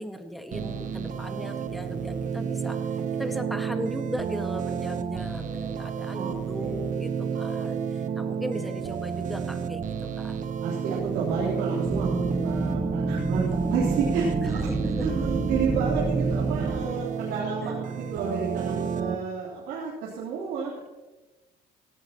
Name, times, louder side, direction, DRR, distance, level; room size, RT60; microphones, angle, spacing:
voice 1, 0.0-10.4 14.4-15.1 17.6-17.8, equal, ahead, 5 dB, 1.8 m, -38 dB
sound 1, 0.5-19.1, right 7 dB, 50° right, 1.1 m, -31 dB
voice 2, 10.6-14.7 15.0-20.8, right 5 dB, 90° right, -6 dB, 3.8 m, -31 dB
sound 2, 11.8-16.8, right 2 dB, 20° right, 1.1 m, -29 dB
17.5 x 16.5 x 3.1 m, 1.2 s
cardioid pair, 110°, 17 cm